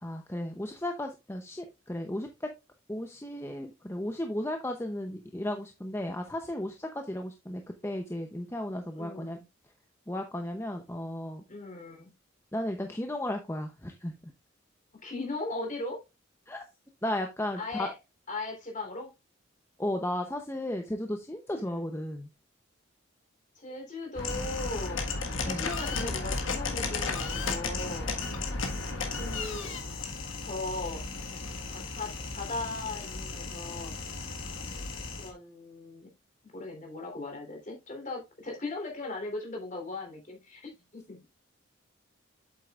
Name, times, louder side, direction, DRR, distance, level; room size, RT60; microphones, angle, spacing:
voice 1, 0.0-2.5 2.9-9.4 10.1-11.4 12.5-14.3 16.5-16.6 17.0-17.9 19.8-22.3 25.5-25.7 28.3-28.4, left 1 dB, 10° left, 4 dB, 0.7 m, -34 dB
voice 2, 9.0-9.4 11.5-12.1 15.0-16.0 17.6-17.9 18.3-19.1 21.5-21.8 23.5-25.0 25.4-28.1 29.1-29.8 30.4-31.0 31.9-33.9 35.2-36.1 36.5-41.2, left 2 dB, 35° left, 1 dB, 3.4 m, -38 dB
sound 1, 24.2-35.3, left 3 dB, 70° left, 1.6 m, -34 dB
8.3 x 7.7 x 2.4 m, 0.25 s
head